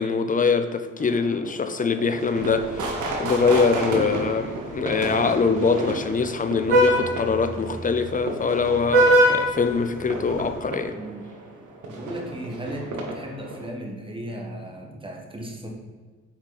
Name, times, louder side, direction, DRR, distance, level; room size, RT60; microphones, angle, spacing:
voice 1, 0.0-10.9, left 5 dB, 25° left, 8 dB, 0.6 m, -23 dB
sound 1, 1.0-13.6, right 2 dB, 65° right, 1.2 m, -33 dB
Vehicle horn car horn honking, 2.4-10.5, right 1 dB, 85° right, 1.4 m, -25 dB
voice 2, 10.9-11.3 11.9-15.7, right 1 dB, 15° right, 0 dB, 1.6 m, -36 dB
5.7 x 4.3 x 4.2 m, 1.4 s
hypercardioid pair, 45°, 32 cm